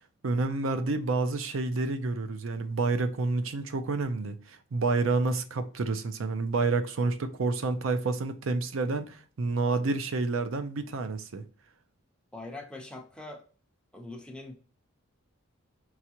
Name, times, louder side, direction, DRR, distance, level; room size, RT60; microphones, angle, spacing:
voice 1, 0.2-11.4, right 3 dB, 75° right, 0.5 m, -29 dB
voice 2, 12.3-13.4 13.9-14.5, left 2 dB, 5° left, 0.8 m, -42 dB
4.7 x 3.6 x 2.8 m
head